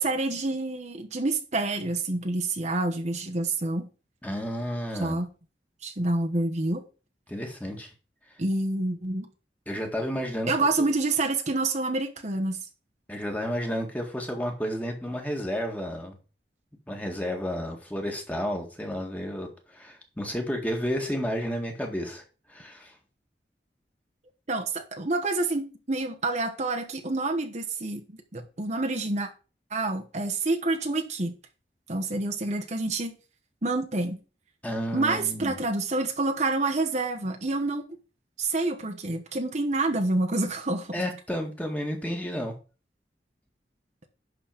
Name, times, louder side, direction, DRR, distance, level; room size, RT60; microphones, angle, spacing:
voice 1, 0.0-3.9 5.0-5.3 5.8-6.8 8.4-9.3 10.5-12.6 24.5-28.0 28.3-29.3 29.7-31.4 31.9-33.1 33.6-34.2 34.9-37.8 38.4-40.9, right 2 dB, 40° right, 1.1 m, -27 dB
voice 2, 4.2-5.2 7.3-7.9 9.7-10.9 13.1-16.2 16.9-22.2 22.5-23.0 34.6-35.6 40.9-42.5, equal, 10° left, 1.9 m, -31 dB
11.5 x 4.2 x 5.9 m
head